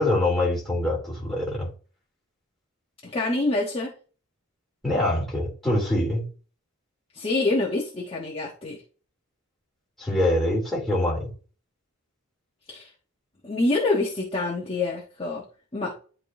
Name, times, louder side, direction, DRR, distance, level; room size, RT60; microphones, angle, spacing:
voice 1, 0.0-1.7 4.8-6.3 10.0-11.3, left 1 dB, ahead, -5 dB, 2.9 m, -24 dB
voice 2, 3.0-3.9 7.1-8.8 12.7-12.9 13.4-15.4 15.7-15.9, left 2 dB, 25° left, -3 dB, 1.1 m, -26 dB
10.5 x 3.7 x 2.7 m, 0.37 s
head